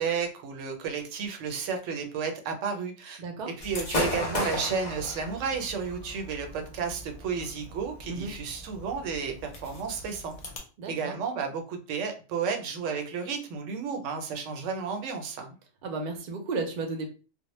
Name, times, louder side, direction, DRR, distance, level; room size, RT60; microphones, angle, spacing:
voice 1, 0.0-10.3 10.9-15.6, right 5 dB, 90° right, 4 dB, 0.9 m, -32 dB
voice 2, 3.2-3.5 8.1-8.4 10.8-11.2 15.8-17.1, right 3 dB, 55° right, 3 dB, 0.6 m, -33 dB
Gunshot gunfire / Fireworks, 3.6-10.6, left 2 dB, 45° left, 0.6 m, -36 dB
2.0 x 2.0 x 3.0 m, 0.35 s
omnidirectional pair, 1.2 m